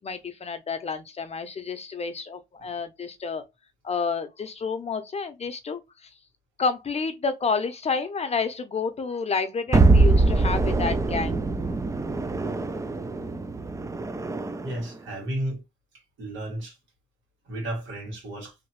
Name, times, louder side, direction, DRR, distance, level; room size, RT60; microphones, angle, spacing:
voice 1, 0.0-3.4 3.8-5.8 6.6-11.4 12.4-12.5, left 5 dB, 30° left, 0.7 m, -29 dB
sound 1, 9.7-14.8, right 3 dB, 15° right, 0.4 m, -23 dB
voice 2, 14.6-15.6 16.2-16.8 17.4-18.6, right 1 dB, 80° right, 1.9 m, -33 dB
2.9 x 2.6 x 3.0 m
cardioid pair, 90°, 20 cm